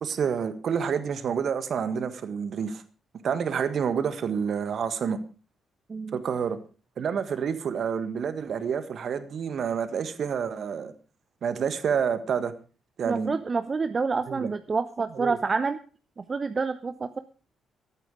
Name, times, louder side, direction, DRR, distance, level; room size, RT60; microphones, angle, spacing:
voice 1, 0.0-2.8 3.2-5.2 6.1-6.6 7.0-10.9 11.4-12.5 13.0-13.3 14.3-14.5 15.2-15.4, right 7 dB, 50° right, 12 dB, 1.6 m, -28 dB
voice 2, 13.1-15.8 16.2-17.2, right 4 dB, 35° right, 11 dB, 0.9 m, -28 dB
13.5 x 13.0 x 4.8 m, 0.36 s
figure-of-eight pair, 40°, 0 cm